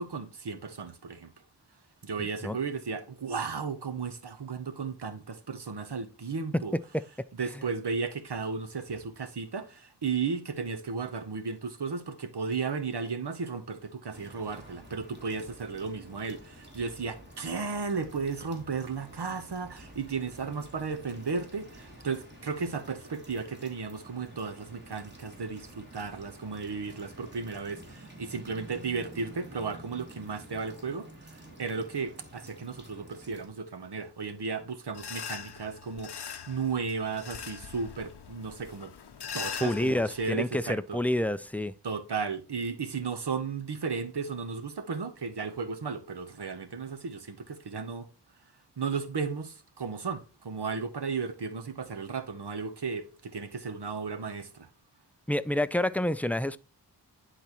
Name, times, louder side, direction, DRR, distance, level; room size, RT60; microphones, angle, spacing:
voice 1, 0.0-1.3 2.0-6.7 7.4-38.9 39.3-41.0 41.8-48.1 48.8-54.7, right 5 dB, 75° right, 0.9 m, -34 dB
sound 1, 14.1-33.5, right 1 dB, 25° right, 2.5 m, -50 dB
sound 2, 34.9-40.3, left 7 dB, 70° left, 0.7 m, -41 dB
voice 2, 39.6-41.7 55.3-56.6, left 1 dB, 5° left, 0.3 m, -28 dB
10.0 x 4.1 x 3.0 m
wide cardioid pair, 45°, 41 cm